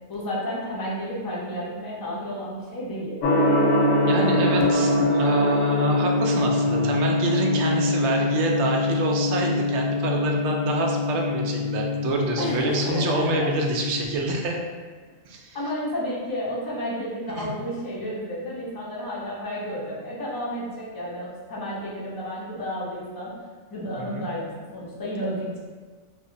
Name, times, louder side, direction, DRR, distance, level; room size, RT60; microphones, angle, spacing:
voice 1, 0.1-3.2 12.4-13.5 15.5-23.3 23.7-25.6, equal, 30° left, -6 dB, 0.4 m, -31 dB
Gong, 3.2-14.0, left 2 dB, 70° left, 0.8 m, -23 dB
voice 2, 4.1-14.6 15.2-15.6 17.3-17.5 24.0-24.3, right 3 dB, 65° right, 1 dB, 0.7 m, -27 dB
3.1 x 2.1 x 3.7 m, 1.4 s
omnidirectional pair, 1.4 m